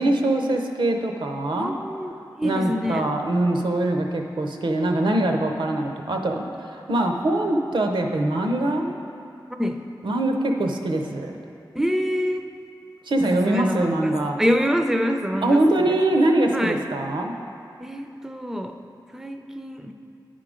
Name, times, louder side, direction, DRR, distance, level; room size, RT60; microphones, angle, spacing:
voice 1, 0.0-1.7 2.4-8.9 10.0-11.4 13.1-14.4 15.4-17.3, right 1 dB, 85° right, 3 dB, 0.6 m, -23 dB
voice 2, 1.6-2.1 2.4-3.1 9.6-9.8 11.7-12.4 13.3-15.6 15.9-16.0 16.5-16.8 17.8-18.7 19.1-19.9, equal, 5° right, 6 dB, 0.3 m, -25 dB
9.9 x 3.8 x 4.9 m, 2.5 s
wide cardioid pair, 95°, 8 cm